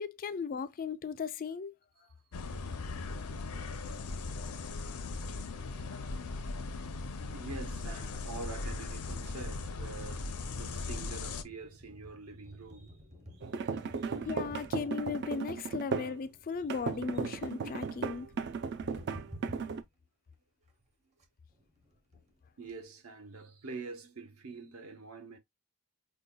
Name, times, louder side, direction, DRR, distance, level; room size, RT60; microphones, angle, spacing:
voice 1, 0.0-1.7 14.2-18.3, left 5 dB, 40° left, 0.3 m, -37 dB
sound 1, 2.3-11.4, left 3 dB, 85° left, 0.6 m, -39 dB
voice 2, 7.3-10.3 10.6-13.0 13.6-14.2 22.6-25.4, right 4 dB, 70° right, 0.8 m, -45 dB
sound 2, 11.4-19.9 20.3-20.4 20.7-20.8 21.2-21.3 21.5-22.8, equal, 30° right, 0.8 m, -53 dB
sound 3, 13.4-16.2 16.7-19.8, right 5 dB, 50° right, 0.4 m, -36 dB
5.4 x 2.2 x 2.2 m
head